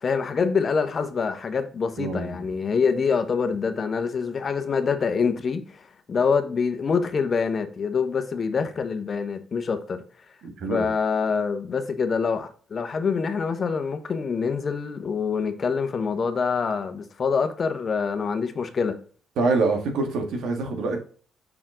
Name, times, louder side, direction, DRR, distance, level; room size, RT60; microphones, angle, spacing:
voice 1, 0.0-10.0 10.7-19.0, left 5 dB, 45° left, 1.0 m, -25 dB
voice 2, 2.0-2.5 10.4-10.9 19.4-21.0, right 3 dB, 80° right, 1.8 m, -25 dB
5.9 x 4.3 x 3.8 m
cardioid pair, 95°, 0 cm